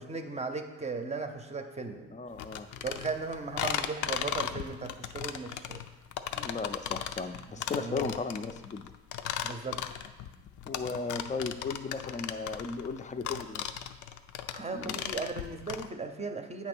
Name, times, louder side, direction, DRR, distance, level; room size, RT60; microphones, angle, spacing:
voice 1, 0.0-2.1 2.8-5.8 7.5-8.2 9.4-9.8 14.5-16.7, right 4 dB, 20° right, 6 dB, 0.7 m, -37 dB
voice 2, 2.1-2.7 6.3-8.8 10.7-13.7 14.7-15.0, left 4 dB, 25° left, 8 dB, 0.5 m, -36 dB
sound 1, 2.4-15.9, left 10 dB, 75° left, 0.5 m, -36 dB
8.5 x 2.9 x 6.1 m, 1.1 s
cardioid pair, 90°, 30 cm